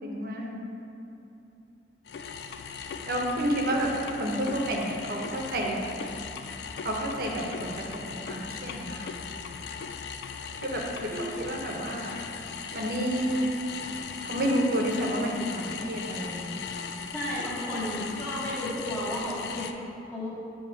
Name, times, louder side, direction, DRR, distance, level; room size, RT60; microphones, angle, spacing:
voice 1, 0.0-0.6 3.1-5.8 6.8-9.1 10.6-12.1 12.7-13.5 14.2-16.6, right 1 dB, 55° right, 0 dB, 0.9 m, -30 dB
sound 1, 2.1-19.7, left 6 dB, 65° left, 0.3 m, -38 dB
voice 2, 17.1-20.3, equal, 5° left, -13 dB, 1.1 m, -33 dB
8.4 x 3.0 x 5.7 m, 2.8 s
head